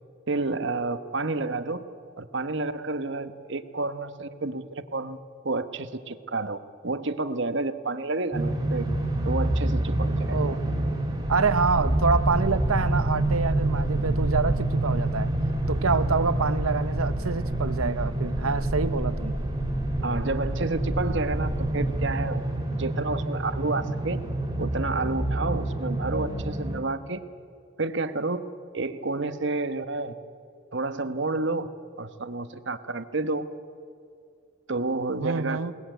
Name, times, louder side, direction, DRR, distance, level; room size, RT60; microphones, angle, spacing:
voice 1, 0.3-1.8 2.2-5.2 5.4-8.9 9.2-10.4 20.0-22.5 22.8-24.2 24.6-27.2 27.8-30.1 30.7-31.7 32.0-33.5 34.7-35.6, right 3 dB, 55° right, 1.1 m, -30 dB
sound 1, 8.3-26.8, right 1 dB, 15° right, 2.8 m, -28 dB
voice 2, 10.3-10.6 11.3-15.3 15.7-19.4 35.2-35.7, right 4 dB, 85° right, 0.9 m, -26 dB
sound 2, 11.2-22.1, equal, 40° left, 5.1 m, -33 dB
21.5 x 19.0 x 9.1 m
head